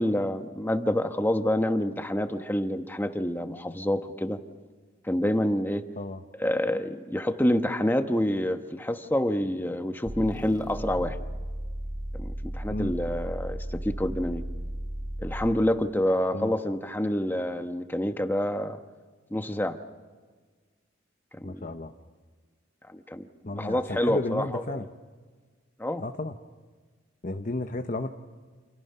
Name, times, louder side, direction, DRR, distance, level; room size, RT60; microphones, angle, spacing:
voice 1, 0.0-4.4 5.0-5.8 6.4-11.2 12.1-14.4 15.2-18.8 19.3-19.8 21.4-21.7 22.9-23.3 23.6-24.8 25.8-26.0, left 1 dB, 10° left, 7 dB, 1.1 m, -27 dB
sound 1, 10.1-15.7, right 1 dB, 20° right, 1.4 m, -35 dB
voice 2, 21.4-21.9 23.4-24.9 26.0-26.3 27.2-28.1, left 2 dB, 40° left, 6 dB, 0.9 m, -32 dB
29.0 x 28.0 x 5.7 m, 1.4 s
head